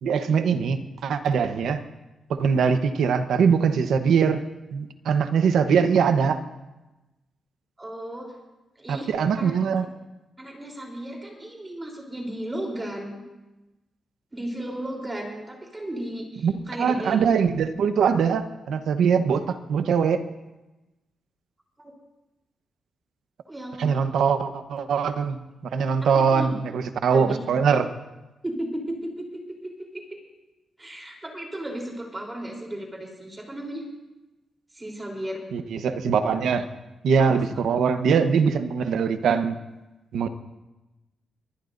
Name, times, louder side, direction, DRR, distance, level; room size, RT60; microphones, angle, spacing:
voice 1, 0.0-1.8 2.3-4.4 4.7-6.4 8.9-9.9 16.4-20.2 23.8-25.4 25.7-27.9 35.5-36.6 37.0-39.6 40.1-40.3, right 6 dB, 85° right, 8 dB, 1.0 m, -22 dB
voice 2, 7.8-8.3 8.8-9.1 9.4-9.5 10.4-13.2 14.3-17.2 21.8-21.9 23.5-24.0 26.1-26.5 27.1-27.4 28.4-30.0 30.8-33.8 34.7-35.4 37.2-37.6, right 1 dB, 15° right, 0 dB, 3.6 m, -35 dB
23.5 x 20.0 x 2.7 m, 1.1 s
wide cardioid pair, 130°, 0 cm